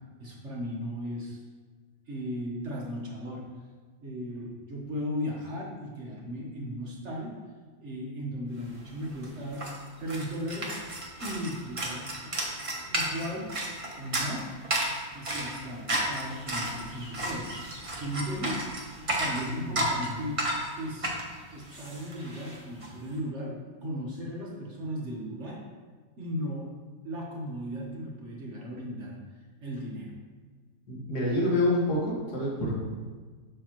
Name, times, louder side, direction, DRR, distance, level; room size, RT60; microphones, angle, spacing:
voice 1, 0.2-1.4 2.1-3.5 4.0-7.4 7.8-10.8 11.2-12.3 12.9-13.6 14.0-14.6 15.1-17.6 18.0-18.7 19.2-21.1 21.5-25.7 26.2-26.8 27.0-29.2 29.6-30.1, equal, 50° right, -2 dB, 1.3 m, -36 dB
sound 1, 8.7-8.8 9.0-22.9, right 1 dB, 25° right, 0.9 m, -33 dB
voice 2, 19.3-20.0 30.9-32.9, left 1 dB, 80° left, -5 dB, 2.3 m, -28 dB
7.0 x 5.9 x 3.0 m, 1.4 s
omnidirectional pair, 1.7 m